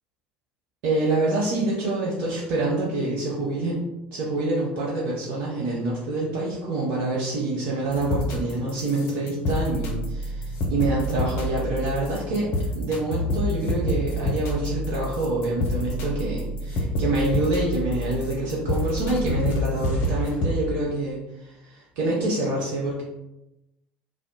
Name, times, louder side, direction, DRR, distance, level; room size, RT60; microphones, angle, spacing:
voice 1, 0.8-3.8 4.1-12.5 12.8-23.0, right 2 dB, 60° right, -5 dB, 0.5 m, -26 dB
sound 1, 7.9-20.5, left 1 dB, 55° left, 0.5 m, -28 dB
2.5 x 2.0 x 2.8 m, 0.93 s
figure-of-eight pair, 65°, 5 cm